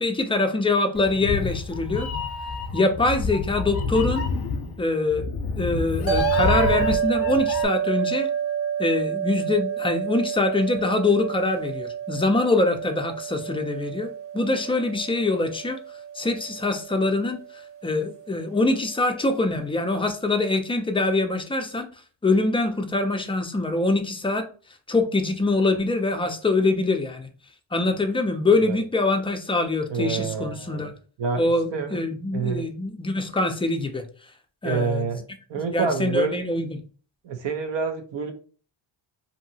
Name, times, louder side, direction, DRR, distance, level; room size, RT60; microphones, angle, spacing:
voice 1, 0.0-2.1 2.7-4.3 4.8-5.3 5.6-8.3 8.8-15.8 16.2-17.4 17.8-21.9 22.2-24.5 24.9-27.3 27.7-30.9 31.4-34.0 34.6-35.0 35.5-36.8, left 2 dB, 10° left, 5 dB, 0.4 m, -24 dB
Meow, 1.0-7.7, left 4 dB, 50° left, 0.6 m, -28 dB
sound 1, 6.1-18.6, right 8 dB, 30° right, 0.9 m, -29 dB
voice 2, 29.9-30.9 31.2-32.0 32.3-32.7 34.6-35.2 35.5-36.4 37.2-38.3, right 5 dB, 65° right, 7 dB, 0.7 m, -27 dB
2.7 x 2.7 x 2.7 m, 0.39 s
cardioid pair, 90°, 48 cm